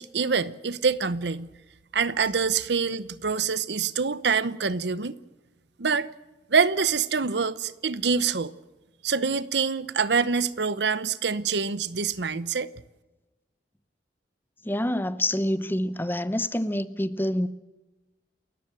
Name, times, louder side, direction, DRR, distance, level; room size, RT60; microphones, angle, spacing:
voice 1, 0.0-1.5 1.9-5.2 5.8-6.1 6.5-8.5 9.0-12.7, right 5 dB, 70° right, 0.8 m, -25 dB
voice 2, 14.6-17.5, left 1 dB, 10° left, 0.8 m, -27 dB
29.0 x 14.0 x 7.6 m
head